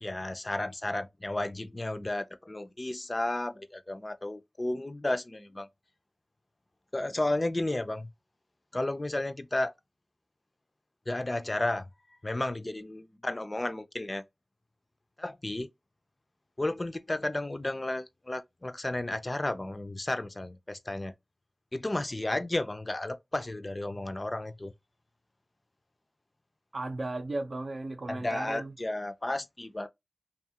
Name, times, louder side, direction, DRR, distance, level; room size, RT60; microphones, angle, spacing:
voice 1, 0.0-5.7 6.9-8.1 8.7-9.7 11.1-11.8 12.2-14.2 15.2-15.7 16.6-21.1 21.7-24.7 28.1-29.9, left 1 dB, 30° left, 0.4 m, -33 dB
voice 2, 26.7-28.7, right 2 dB, 65° right, 0.5 m, -35 dB
2.7 x 2.3 x 2.7 m
wide cardioid pair, 55°, 0 cm